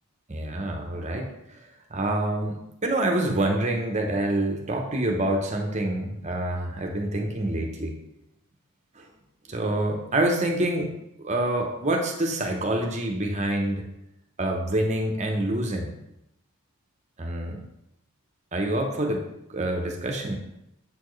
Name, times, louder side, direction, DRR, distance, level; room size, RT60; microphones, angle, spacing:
voice 1, 0.3-1.3 1.9-7.9 9.0-9.1 9.5-10.9 11.2-13.8 14.4-15.9 17.2-17.6 18.5-20.4, right 1 dB, 30° right, 2 dB, 0.8 m, -26 dB
7.5 x 4.3 x 3.2 m, 0.83 s
head